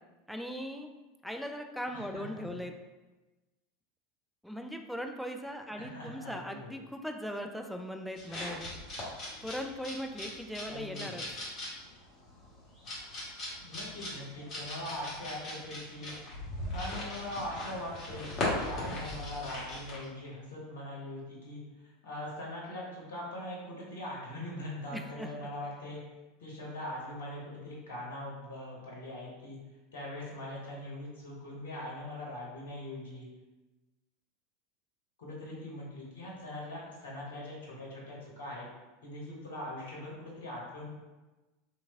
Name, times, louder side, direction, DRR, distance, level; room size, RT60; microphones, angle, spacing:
voice 1, 0.3-0.9 1.2-2.7 4.4-8.7 9.4-11.2 24.9-25.3, equal, ahead, 4 dB, 0.3 m, -39 dB
voice 2, 1.9-2.6 5.7-6.8 10.7-11.3 13.6-16.2 16.7-26.0 26.4-29.6 29.9-33.3 35.2-38.7 39.0-40.9, left 1 dB, 70° left, -4 dB, 0.9 m, -41 dB
sound 1, 8.2-20.0, left 1 dB, 35° left, 1.1 m, -39 dB
3.1 x 2.3 x 3.3 m, 1.1 s
figure-of-eight pair, 80°, 0 cm